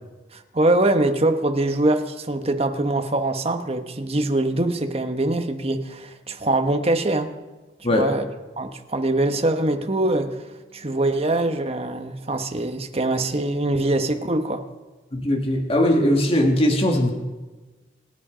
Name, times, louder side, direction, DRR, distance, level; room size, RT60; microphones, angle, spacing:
voice 1, 0.3-7.3 7.9-8.3 8.6-10.4 10.7-14.6, right 2 dB, 30° right, 6 dB, 1.2 m, -23 dB
voice 2, 15.1-17.1, left 1 dB, 30° left, 2 dB, 1.9 m, -19 dB
27.5 x 10.0 x 5.1 m, 1.2 s
head